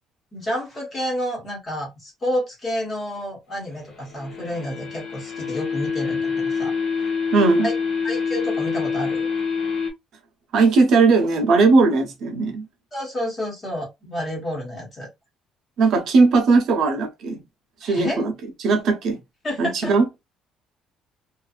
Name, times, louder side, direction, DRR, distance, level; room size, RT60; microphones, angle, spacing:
voice 1, 0.3-6.7 7.0-7.1 7.6-7.7 8.0-9.3 12.9-15.1 17.8-18.2 19.4-19.9, equal, 25° left, 1.2 m, -29 dB
sound 1, 3.9-9.9, left 5 dB, 50° left, 0.7 m, -26 dB
voice 2, 7.3-7.7 10.5-12.7 15.8-17.4 17.8-18.3 18.6-19.2 19.6-20.0, right 3 dB, 50° right, 0.7 m, -18 dB
2.6 x 2.4 x 2.3 m
cardioid pair, 175°, 0 cm